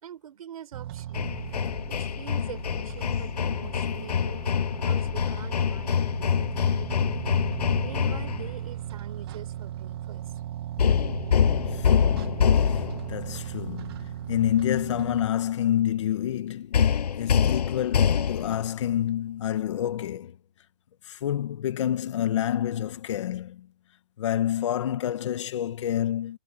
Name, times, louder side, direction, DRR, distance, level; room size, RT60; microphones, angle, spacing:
voice 1, 0.0-7.2 7.8-10.2, right 9 dB, 60° right, 5.6 m, -45 dB
sound 1, 0.7-15.3, right 11 dB, 35° right, 2.7 m, -37 dB
Hammer, 1.1-8.6 10.8-13.2 16.7-18.7, left 8 dB, 70° left, 7.8 m, -25 dB
voice 2, 11.7-20.3 21.1-23.7 24.2-26.4, left 11 dB, 45° left, 1.8 m, -28 dB
hypercardioid pair, 170°, 21 cm